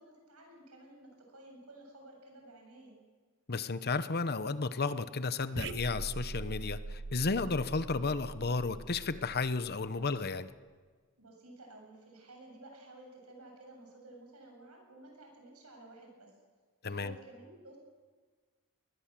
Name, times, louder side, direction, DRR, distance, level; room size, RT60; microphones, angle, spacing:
voice 1, 0.0-3.0 11.2-16.3 16.8-17.8, right 2 dB, 80° right, 1 dB, 7.7 m, -53 dB
voice 2, 3.5-10.5 16.8-17.1, left 4 dB, 45° left, 12 dB, 0.9 m, -33 dB
sound 1, 5.6-10.2, right 3 dB, 55° right, 0.7 m, -43 dB
21.5 x 20.5 x 7.6 m, 1.5 s
head